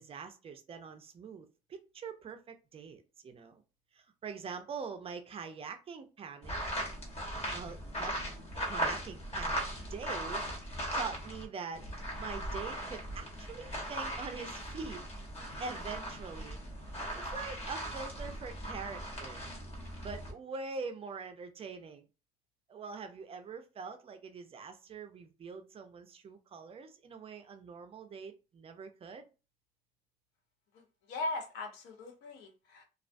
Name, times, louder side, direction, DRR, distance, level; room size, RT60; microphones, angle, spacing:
voice 1, 0.0-3.6 3.9-6.6 7.5-8.1 8.7-9.6 9.9-11.8 12.2-15.0 15.6-16.6 17.2-19.4 20.0-22.1 22.7-29.3, right 5 dB, 35° right, 0.4 m, -44 dB
sound 1, 6.4-11.4 11.7-20.3, equal, 35° left, 1.0 m, -38 dB
voice 2, 30.7-32.8, left 2 dB, 90° left, 0.7 m, -39 dB
2.3 x 2.1 x 2.5 m
cardioid pair, 110°, 17 cm